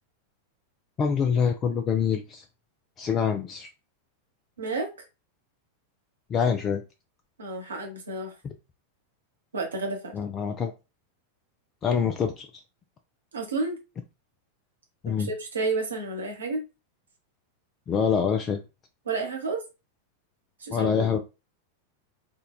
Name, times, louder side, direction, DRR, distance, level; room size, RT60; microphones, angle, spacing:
voice 1, 1.0-2.4 3.0-3.7 6.3-6.8 10.1-10.7 11.8-12.5 15.0-15.3 17.9-18.6 20.7-21.2, left 7 dB, 25° left, 0.3 m, -25 dB
voice 2, 4.6-4.9 7.4-8.3 9.5-10.1 13.3-13.8 15.1-16.6 19.0-19.6 20.6-21.1, right 3 dB, 70° right, 0.8 m, -31 dB
3.6 x 2.2 x 2.2 m
figure-of-eight pair, 90°, 0 cm